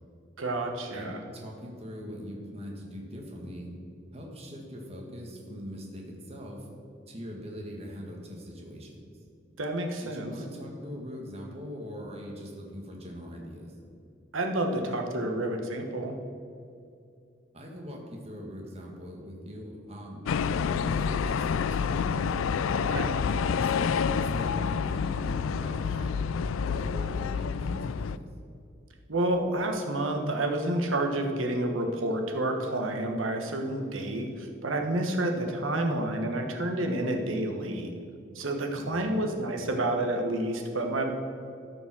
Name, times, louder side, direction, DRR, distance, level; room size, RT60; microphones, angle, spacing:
voice 1, 0.4-1.2 9.6-10.3 14.3-16.1 22.9-23.1 29.1-37.9 38.3-41.1, right 1 dB, 80° right, 3 dB, 1.3 m, -29 dB
voice 2, 0.9-3.7 4.1-6.7 7.1-9.0 10.0-13.7 17.5-20.2 20.8-22.4 22.6-26.2 26.6-28.3 38.9-39.2, equal, 30° right, 0 dB, 1.6 m, -41 dB
sound 1, 20.3-28.2, left 6 dB, 85° left, 0.3 m, -28 dB
13.5 x 5.2 x 6.1 m, 2.5 s
head